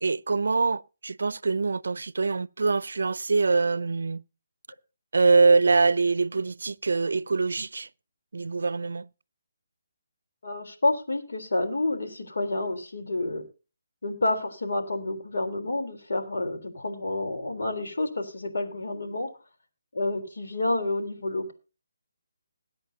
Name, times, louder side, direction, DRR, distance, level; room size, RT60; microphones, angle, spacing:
voice 1, 0.0-4.2 5.1-7.9 8.3-9.1, right 4 dB, 80° right, 0.5 m, -24 dB
voice 2, 10.4-13.4 14.0-19.3 19.9-21.5, left 2 dB, 80° left, 3.6 m, -29 dB
21.5 x 8.8 x 2.8 m
hypercardioid pair, 165°, 0 cm